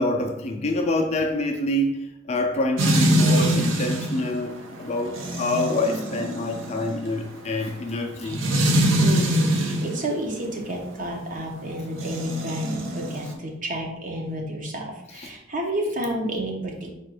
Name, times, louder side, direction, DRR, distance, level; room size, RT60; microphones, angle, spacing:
voice 1, 0.0-8.4 15.2-15.3, left 1 dB, 30° left, 3 dB, 0.4 m, -26 dB
sound 1, 2.8-10.0 11.9-13.3, right 1 dB, 70° right, 0.7 m, -24 dB
voice 2, 9.0-16.9, right 1 dB, 40° right, 0 dB, 0.9 m, -30 dB
4.3 x 2.5 x 4.8 m, 0.87 s
head